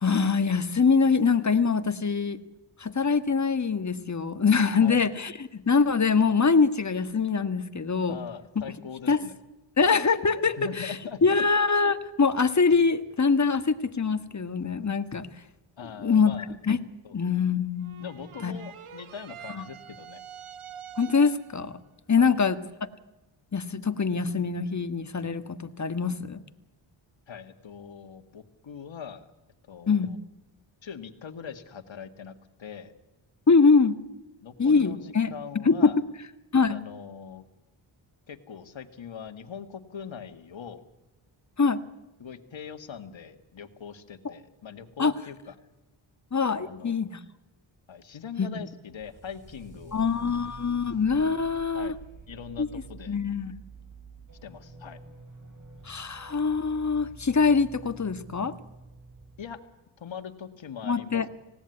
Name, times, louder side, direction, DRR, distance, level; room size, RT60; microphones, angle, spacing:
voice 1, 0.0-2.4 2.8-8.2 9.1-9.2 9.8-11.0 11.2-15.3 16.0-16.3 16.6-16.8 17.1-18.1 18.4-18.5 19.6-19.7 21.0-21.8 22.1-22.6 23.5-26.4 29.9-30.1 33.5-34.0 34.6-35.3 35.6-35.9 36.5-36.8 41.6-41.8 45.0-45.1 46.3-47.2 48.4-48.6 49.9-51.9 52.6-52.7 53.1-53.5 55.8-58.5 60.8-61.3, left 5 dB, 35° left, 10 dB, 1.5 m, -24 dB
voice 2, 8.1-9.3 10.6-11.5 15.8-16.5 17.0-17.2 18.0-20.2 22.2-22.3 27.3-29.3 29.7-30.2 30.8-32.9 34.4-36.0 36.7-37.5 38.3-40.8 42.2-45.5 46.6-47.0 47.9-50.1 51.7-51.9 52.3-53.2 54.4-55.0 59.4-59.6 60.0-61.3, left 7 dB, 65° left, 8 dB, 2.0 m, -41 dB
sound 1, 17.8-21.7, right 9 dB, 85° right, 1.5 m, -45 dB
sound 2, 48.9-59.6, right 4 dB, 35° right, 6.3 m, -48 dB
19.0 x 17.0 x 9.7 m, 1.0 s
cardioid pair, 55°, 50 cm